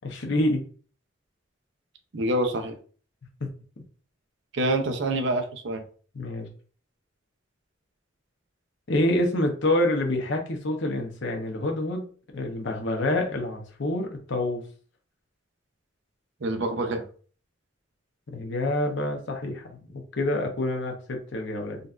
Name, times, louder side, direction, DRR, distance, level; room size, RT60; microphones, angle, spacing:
voice 1, 0.0-0.6 6.1-6.5 8.9-12.1 12.3-14.6 18.3-21.8, left 1 dB, 65° left, 3 dB, 0.7 m, -27 dB
voice 2, 2.1-2.8 4.5-5.8 16.4-17.0, right 1 dB, 65° right, 6 dB, 0.5 m, -26 dB
3.9 x 2.3 x 2.4 m, 0.42 s
head